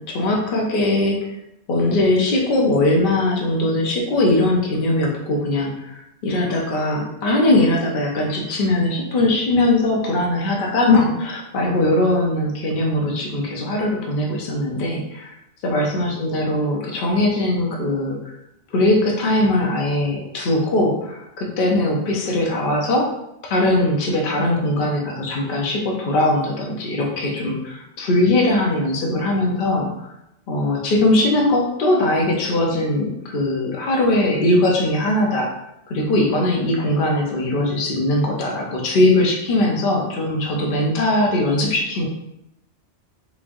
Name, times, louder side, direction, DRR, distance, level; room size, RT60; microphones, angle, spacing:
voice 1, 0.1-1.3 1.7-15.3 15.6-18.3 18.7-23.0 23.4-29.9 30.5-35.5 35.9-42.1, left 1 dB, 50° left, -1 dB, 0.8 m, -20 dB
3.5 x 3.1 x 2.5 m, 0.84 s
omnidirectional pair, 1.2 m